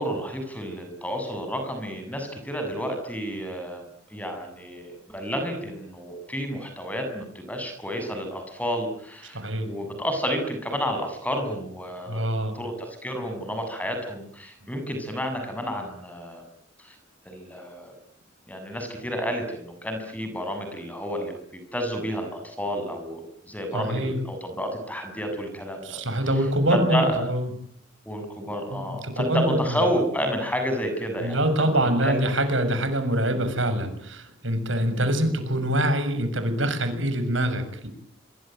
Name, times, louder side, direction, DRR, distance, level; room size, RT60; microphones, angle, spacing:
voice 1, 0.0-12.2 12.6-16.4 16.8-17.0 17.3-18.0 18.5-21.3 21.7-23.2 23.5-26.0 26.7-27.1 28.1-31.7 32.0-32.2 33.3-33.4 34.9-35.1, equal, 10° left, 6 dB, 7.4 m, -30 dB
voice 2, 9.3-9.7 12.1-12.6 23.7-24.2 25.8-27.5 28.7-29.6 31.2-37.9, right 1 dB, 80° right, 9 dB, 6.8 m, -25 dB
26.5 x 24.0 x 9.2 m, 0.65 s
head